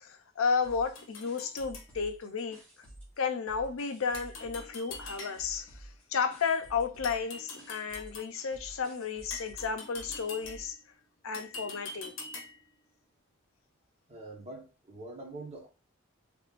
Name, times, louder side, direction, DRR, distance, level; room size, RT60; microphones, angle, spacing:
voice 1, 0.0-2.6 3.2-10.8 11.2-12.1, left 5 dB, 80° left, 0.5 m, -33 dB
sound 1, 0.6-3.2 3.5-10.7, right 1 dB, 5° left, 1.6 m, -51 dB
sound 2, 0.9-1.9 4.1-5.7 7.0-8.4 9.3-10.8 11.3-12.7, left 3 dB, 65° left, 0.9 m, -45 dB
voice 2, 14.1-15.7, right 2 dB, 30° right, 1.1 m, -44 dB
3.5 x 3.3 x 2.5 m
head